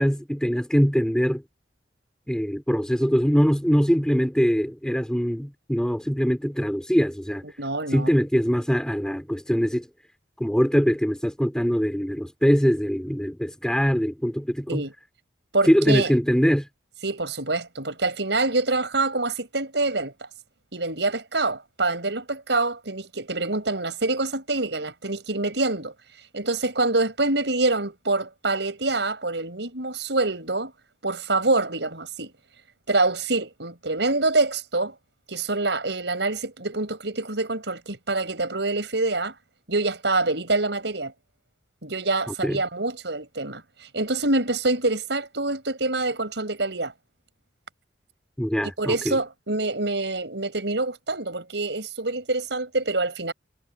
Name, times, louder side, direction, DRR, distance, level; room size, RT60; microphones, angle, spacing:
voice 1, 0.0-1.4 2.3-7.4 7.9-9.9 10.4-14.8 15.7-16.7 42.4-42.6 48.4-49.2, equal, 5° left, 3.5 m, -22 dB
voice 2, 7.6-8.1 14.7-14.9 15.5-16.1 17.0-20.1 20.7-25.9 26.3-30.7 31.0-32.3 32.9-34.9 35.3-39.3 39.7-41.1 41.8-46.9 48.8-53.3, right 2 dB, 70° right, 6.3 m, -26 dB
head